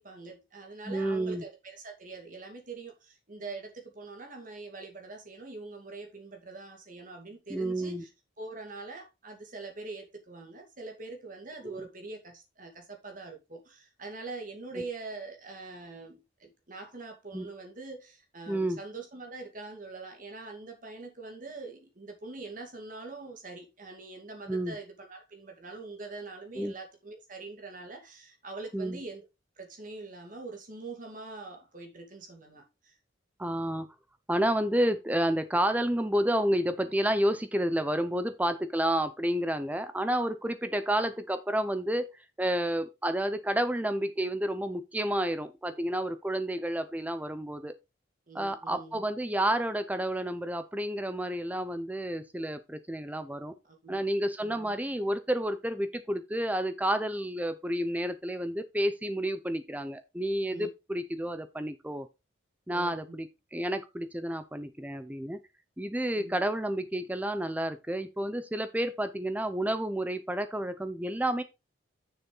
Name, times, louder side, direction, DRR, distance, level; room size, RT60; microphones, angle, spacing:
voice 1, 0.0-8.1 8.4-29.3 29.6-32.9 48.3-49.0 53.6-54.1 54.4-54.8 60.5-60.7 62.7-63.2 66.1-66.4, right 3 dB, 45° right, 2.3 m, -44 dB
voice 2, 0.9-1.4 7.5-8.0 11.6-11.9 14.8-14.9 17.3-17.5 18.5-18.8 24.5-24.8 26.6-26.7 28.7-29.0 33.4-33.9 34.3-42.1 42.4-47.7 48.3-53.5 53.9-62.1 62.7-63.3 63.5-65.4 65.8-71.4, right 1 dB, 10° right, 0.5 m, -30 dB
6.9 x 6.6 x 3.9 m
head